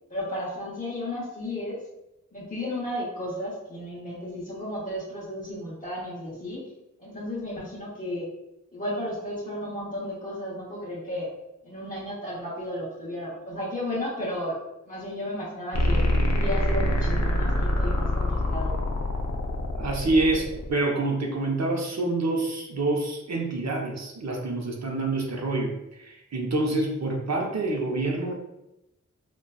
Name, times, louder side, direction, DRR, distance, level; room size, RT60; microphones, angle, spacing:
voice 1, 0.1-1.8 2.3-6.7 7.0-8.3 8.7-11.3 11.6-14.6 14.9-16.0 16.3-18.8, left 1 dB, 25° left, -9 dB, 0.8 m, -33 dB
sound 1, 15.7-20.7, equal, 55° left, 0.6 m, -25 dB
voice 2, 19.8-25.7 26.0-28.3, right 2 dB, 60° right, 0 dB, 0.6 m, -27 dB
3.8 x 2.3 x 2.3 m, 0.91 s
wide cardioid pair, 80°, 31 cm